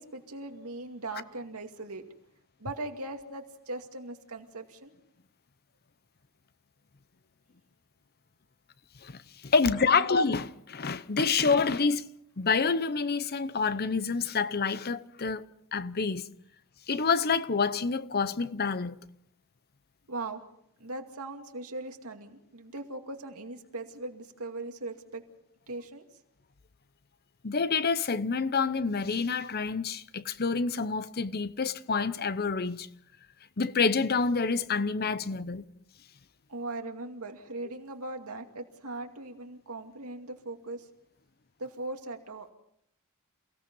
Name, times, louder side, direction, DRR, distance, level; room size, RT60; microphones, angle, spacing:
voice 1, 0.0-2.1 2.6-4.9 9.9-10.0 20.1-20.4 20.8-25.2 25.7-26.0 36.5-40.8 41.6-42.5, right 2 dB, 80° right, 2.4 m, -39 dB
voice 2, 9.0-12.1 12.4-15.4 15.7-16.2 16.9-19.0 27.4-32.9 33.6-35.6, left 4 dB, 45° left, 0.8 m, -27 dB
28.5 x 17.0 x 5.5 m
head